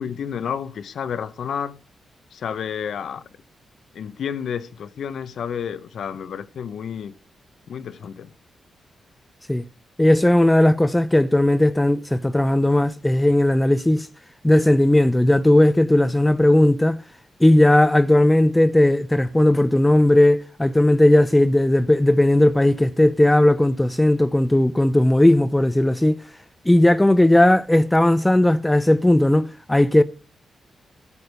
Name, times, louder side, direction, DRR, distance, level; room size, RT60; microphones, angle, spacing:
voice 1, 0.0-1.8 2.3-3.2 3.9-7.1 7.7-8.3, left 7 dB, 75° left, 0.9 m, -30 dB
voice 2, 10.0-14.1 14.4-17.0 17.4-26.2 26.7-30.0, left 1 dB, 10° left, 0.7 m, -17 dB
11.0 x 7.1 x 8.1 m
cardioid pair, 75°, 0 cm